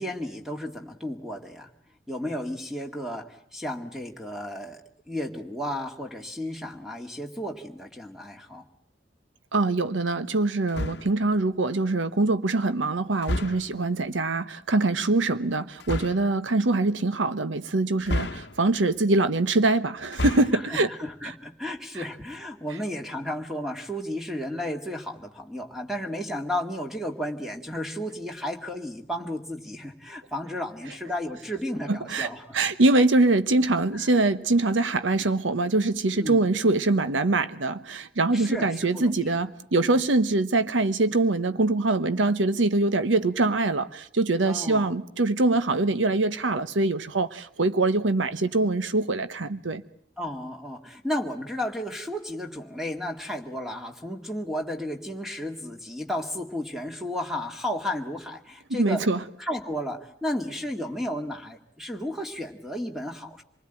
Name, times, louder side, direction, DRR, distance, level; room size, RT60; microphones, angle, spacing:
voice 1, 0.0-1.7 2.1-4.8 5.1-8.7 20.5-32.6 33.9-34.0 36.1-36.5 38.3-39.3 44.4-44.9 50.2-59.1 59.4-63.4, left 1 dB, ahead, 1.9 m, -33 dB
voice 2, 9.5-20.9 22.0-22.1 31.9-49.8 58.7-59.2, right 2 dB, 85° right, 1.0 m, -24 dB
sound 1, 10.7-11.3 13.2-13.8 15.8-16.3 18.0-18.8 20.0-20.7, left 1 dB, 60° left, 1.0 m, -31 dB
26.5 x 20.0 x 9.0 m
head